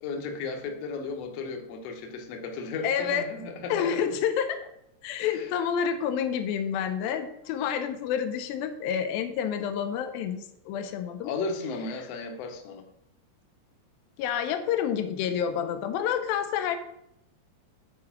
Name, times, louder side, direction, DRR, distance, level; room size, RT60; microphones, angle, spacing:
voice 1, 0.0-4.0 5.3-5.5 11.2-12.8, left 4 dB, 70° left, 4 dB, 1.6 m, -34 dB
voice 2, 2.8-3.3 3.7-4.7 5.0-11.3 14.2-16.8, left 8 dB, 90° left, 8 dB, 2.6 m, -29 dB
8.4 x 4.8 x 5.9 m, 0.80 s
omnidirectional pair, 4.2 m